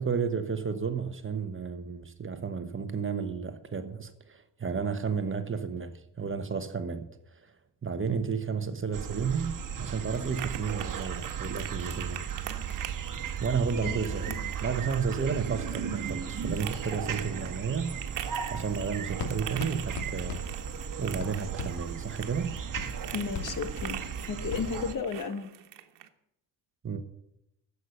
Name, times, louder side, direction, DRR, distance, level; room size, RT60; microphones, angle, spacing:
voice 1, 0.0-7.1 7.8-12.3 13.4-17.9 18.5-20.6 21.0-22.5 26.8-27.0, right 6 dB, 30° right, 1.2 m, -32 dB
sound 1, 8.9-24.9, right 8 dB, 50° right, 1.5 m, -36 dB
sound 2, 8.9-26.1, right 11 dB, 85° right, 1.4 m, -44 dB
voice 2, 13.8-14.5 23.1-25.5, left 5 dB, 50° left, 1.5 m, -34 dB
Writing, 18.6-24.8, left 5 dB, 75° left, 2.6 m, -42 dB
14.5 x 8.2 x 6.9 m
cardioid pair, 140°, 41 cm